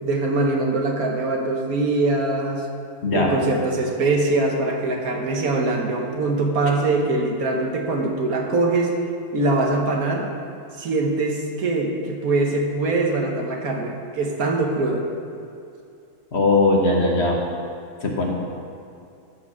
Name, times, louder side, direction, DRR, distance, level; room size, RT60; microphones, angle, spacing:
voice 1, 0.0-2.7 3.1-8.9 9.3-10.3 10.8-15.0, right 2 dB, 65° right, 1 dB, 1.5 m, -22 dB
voice 2, 3.0-3.4 16.3-17.4 18.0-18.3, left 2 dB, 45° left, -1 dB, 1.3 m, -19 dB
13.5 x 4.8 x 6.1 m, 2.4 s
omnidirectional pair, 1.7 m